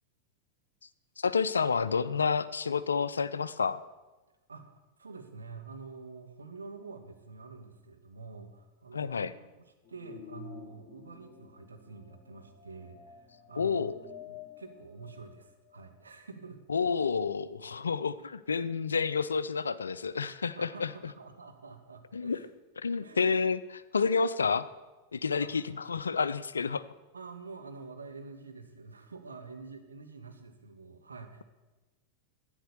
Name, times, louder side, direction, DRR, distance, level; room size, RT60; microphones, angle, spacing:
voice 1, 1.2-3.8 8.9-9.3 13.6-13.9 16.7-21.1 22.1-22.4 22.8-24.7 25.1-26.8, left 5 dB, 75° left, 15 dB, 0.5 m, -29 dB
voice 2, 4.5-13.9 14.2-16.6 20.6-22.5 23.0-23.2 25.4-25.5 27.1-31.4, right 4 dB, 75° right, 5 dB, 1.5 m, -47 dB
sound 1, 9.8-16.0, left 8 dB, 45° left, 1.2 m, -51 dB
12.0 x 8.7 x 6.9 m, 1.2 s
figure-of-eight pair, 90°, 0 cm